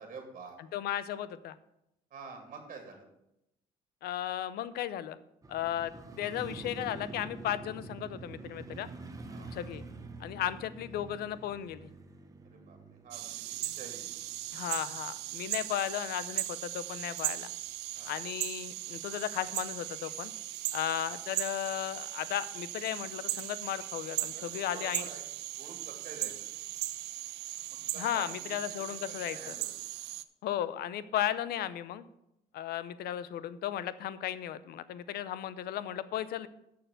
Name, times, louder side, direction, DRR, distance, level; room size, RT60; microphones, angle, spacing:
voice 1, 0.0-0.6 2.1-3.0 9.3-9.6 12.5-12.8 13.0-14.1 17.9-18.2 21.0-21.1 24.2-24.4 24.7-25.2 25.6-26.3 27.9-28.4 28.8-29.7, right 5 dB, 50° right, 3 dB, 2.4 m, -48 dB
voice 2, 0.7-1.6 4.0-5.2 5.5-8.9 9.5-9.8 10.2-11.9 14.5-17.5 18.1-20.3 20.7-25.1 28.0-29.5 30.4-32.0 32.5-36.5, left 11 dB, 70° left, 16 dB, 0.6 m, -35 dB
Motorcycle, 5.4-15.5 15.9-16.0, right 3 dB, 20° right, 1.1 m, -47 dB
sound 1, 13.1-30.2, right 16 dB, 85° right, 0.5 m, -38 dB
6.7 x 6.7 x 7.7 m, 0.85 s
cardioid pair, 110°, 17 cm